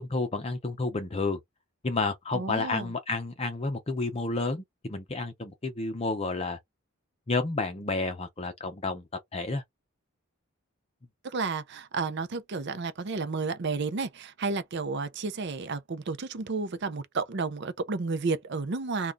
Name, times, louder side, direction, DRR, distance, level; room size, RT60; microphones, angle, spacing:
voice 1, 0.0-1.4 1.8-6.6 7.3-9.0 9.3-9.6, left 3 dB, 30° left, 0.6 m, -30 dB
voice 2, 2.3-2.9 11.2-19.1, right 4 dB, 55° right, 0.6 m, -32 dB
3.5 x 2.3 x 3.9 m
head